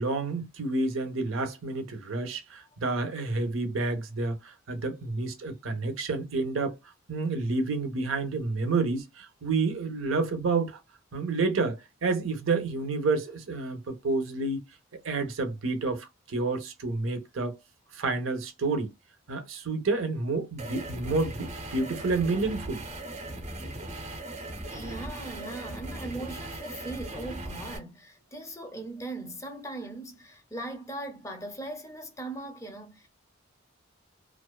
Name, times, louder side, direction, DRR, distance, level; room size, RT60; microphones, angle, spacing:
voice 1, 0.0-6.7 7.1-10.8 11.1-14.6 15.0-17.6 17.9-18.9 19.3-22.8, right 3 dB, 85° right, 0.7 m, -29 dB
sound 1, 20.6-27.8, right 1 dB, 35° right, 0.7 m, -38 dB
voice 2, 24.7-33.1, right 2 dB, 15° left, 0.5 m, -39 dB
2.4 x 2.3 x 2.2 m
head